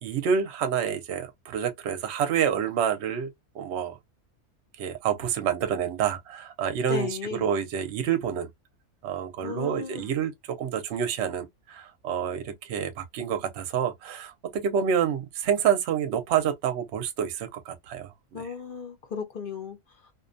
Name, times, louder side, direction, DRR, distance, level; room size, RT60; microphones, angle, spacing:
voice 1, 0.0-4.0 4.8-7.1 7.4-8.5 9.0-18.1, right 8 dB, 60° right, 0.8 m, -28 dB
voice 2, 6.9-7.5 9.4-10.1 18.3-20.1, left 6 dB, 55° left, 0.6 m, -35 dB
2.6 x 2.2 x 2.5 m
omnidirectional pair, 1.5 m